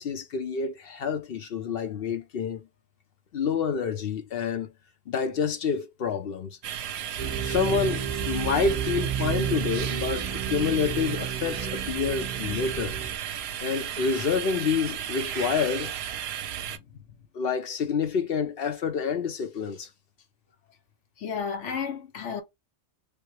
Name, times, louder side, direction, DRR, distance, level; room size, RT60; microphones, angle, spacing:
voice 1, 0.0-2.7 3.3-4.7 5.1-6.6 7.4-8.0 8.3-13.0 13.6-15.9 17.3-19.9, left 6 dB, 60° left, 0.8 m, -28 dB
sound 1, 6.6-16.8, right 9 dB, 65° right, 0.8 m, -34 dB
sound 2, 7.2-13.2, right 8 dB, 35° right, 0.7 m, -32 dB
voice 2, 16.5-17.0 21.2-22.4, left 6 dB, 75° left, 1.1 m, -33 dB
3.4 x 2.2 x 3.0 m
omnidirectional pair, 1.2 m